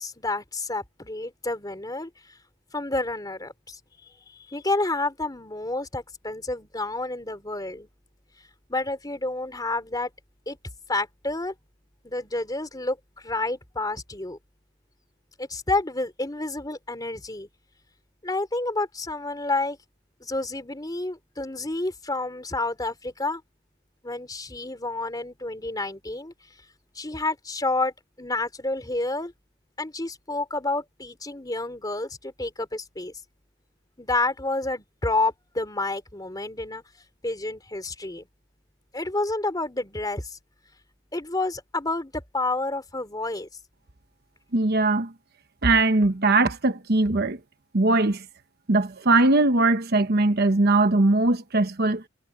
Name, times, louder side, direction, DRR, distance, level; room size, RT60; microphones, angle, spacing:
voice 1, 0.0-2.1 2.7-3.8 4.3-7.9 8.7-10.1 10.5-10.6 10.9-11.5 12.0-14.4 15.4-17.5 18.2-19.8 20.2-23.4 24.0-26.3 27.0-29.3 29.8-33.1 34.0-36.8 37.2-38.3 38.9-40.4 41.1-43.5, left 2 dB, 20° left, 3.3 m, -29 dB
voice 2, 44.5-45.1 45.6-47.4 47.7-48.2 48.7-52.0, right 2 dB, 55° right, 1.1 m, -20 dB
head